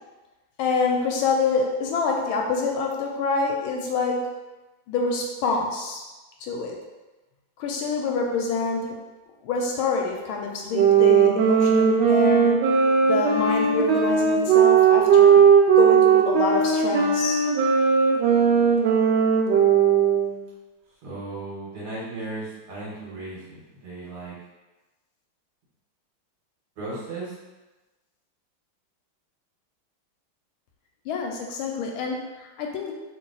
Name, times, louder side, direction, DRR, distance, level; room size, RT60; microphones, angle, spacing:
voice 1, 0.6-4.2 4.9-6.0 6.4-6.8 7.6-8.9 9.4-12.5 13.0-15.4 15.8-17.4 31.1-32.9, left 4 dB, 80° left, 1 dB, 1.4 m, -26 dB
sound 1, 10.7-20.4, right 7 dB, 75° right, 1.1 m, -18 dB
voice 2, 21.0-24.3 26.8-27.3, right 2 dB, 55° right, -8 dB, 1.6 m, -36 dB
3.2 x 2.9 x 3.8 m, 1.1 s
omnidirectional pair, 2.4 m